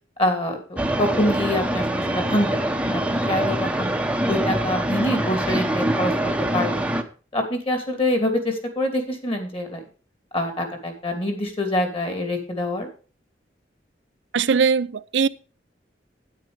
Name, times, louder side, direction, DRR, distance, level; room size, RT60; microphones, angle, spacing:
voice 1, 0.2-2.5 2.8-3.9 4.3-6.1 6.5-7.0 7.3-9.8 10.3-12.9, left 1 dB, 30° left, 2.7 m, -25 dB
sound 1, 0.8-7.0, right 1 dB, 5° right, 0.9 m, -24 dB
voice 2, 14.3-15.3, right 6 dB, 75° right, 0.5 m, -20 dB
9.3 x 9.0 x 5.2 m
head